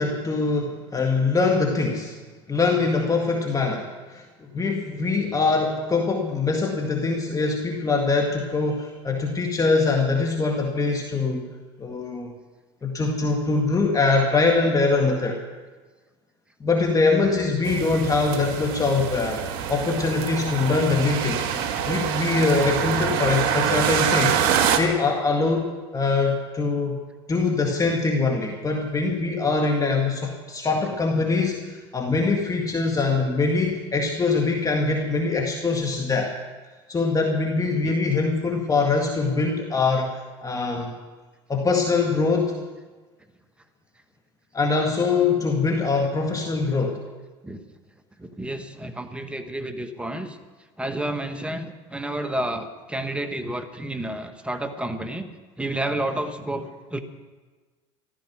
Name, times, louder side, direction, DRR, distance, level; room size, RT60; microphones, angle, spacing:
voice 1, 0.0-2.2 2.5-11.5 11.8-12.3 12.8-15.4 16.6-19.4 19.7-21.4 21.9-24.4 24.8-27.0 27.3-36.3 36.9-40.1 40.4-40.9 41.5-42.5 44.5-47.0, left 3 dB, 25° left, 1 dB, 2.0 m, -23 dB
sound 1, 17.6-24.8, right 8 dB, 70° right, 1.5 m, -25 dB
voice 2, 48.2-50.4 50.8-55.3 55.6-57.0, right 1 dB, 5° right, 8 dB, 1.5 m, -30 dB
14.5 x 12.5 x 6.2 m, 1.3 s
supercardioid pair, 90°, 15 cm